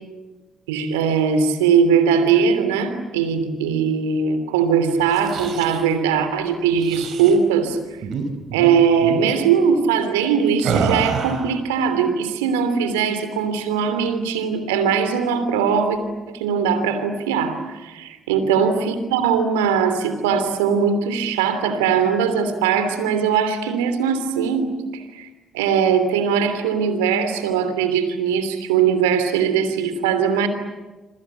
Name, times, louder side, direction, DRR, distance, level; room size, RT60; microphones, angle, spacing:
voice 1, 0.7-7.8 8.5-16.0 16.3-25.3 25.5-30.5, right 6 dB, 85° right, 9 dB, 3.1 m, -20 dB
sound 1, 5.0-5.9 6.8-7.4 8.0-8.2 8.5-8.7 9.0-9.3 10.6-11.5, right 5 dB, 60° right, 4.7 m, -26 dB
27.0 x 26.0 x 8.3 m, 1.2 s
hypercardioid pair, 45°, 0 cm